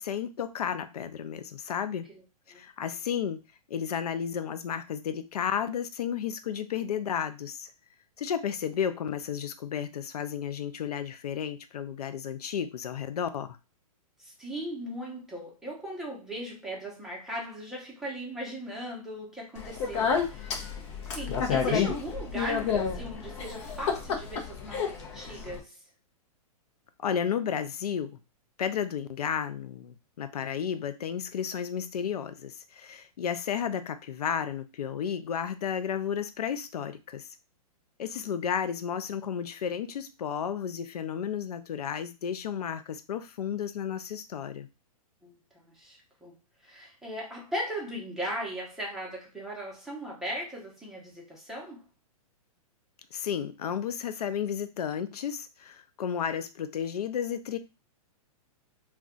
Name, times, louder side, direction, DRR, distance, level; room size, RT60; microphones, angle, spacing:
voice 1, 0.0-2.1 2.5-3.4 3.7-7.7 8.2-13.5 27.0-28.2 28.6-37.3 38.0-44.7 53.1-57.6, left 8 dB, 90° left, 0.4 m, -32 dB
voice 2, 14.2-25.8 45.2-46.4 46.6-51.8, right 1 dB, ahead, 0.9 m, -38 dB
Speech, 19.6-25.6, left 6 dB, 50° left, 0.7 m, -30 dB
2.4 x 2.3 x 3.6 m
hypercardioid pair, 140°, 19 cm